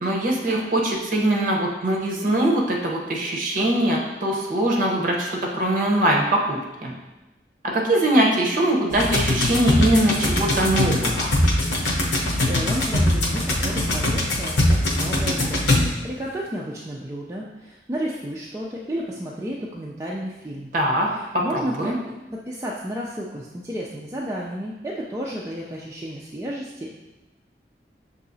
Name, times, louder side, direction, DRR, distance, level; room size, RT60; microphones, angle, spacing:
voice 1, 0.0-5.3 5.5-6.9 7.7-11.3 20.7-21.1 21.3-21.4 21.8-22.0, right 1 dB, 50° right, -2 dB, 0.8 m, -22 dB
sound 1, 8.9-16.2, left 1 dB, 85° left, 0.8 m, -22 dB
voice 2, 12.4-15.8 16.0-20.7 21.1-27.0, equal, 15° right, -4 dB, 0.3 m, -32 dB
6.5 x 2.7 x 2.7 m, 1.0 s
head